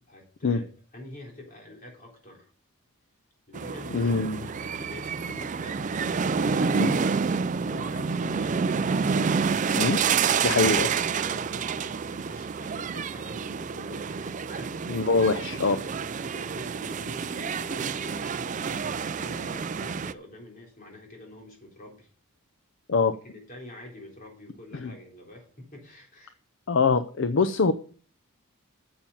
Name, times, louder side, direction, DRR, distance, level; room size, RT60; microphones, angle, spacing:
voice 1, 0.1-0.7 0.9-2.5 3.5-9.1 9.8-15.0 15.4-15.6 16.3-22.1 23.2-26.4, left 1 dB, 40° left, 0 dB, 3.7 m, -46 dB
sound 1, 3.5-20.1, right 5 dB, 35° right, 0.4 m, -28 dB
voice 2, 3.9-4.5 6.7-6.9 9.7-10.0 10.4-10.9 14.9-15.8 22.9-23.2 24.7-24.9 26.7-27.7, left 4 dB, 60° left, 11 dB, 0.5 m, -24 dB
9.0 x 7.5 x 5.6 m, 0.41 s
head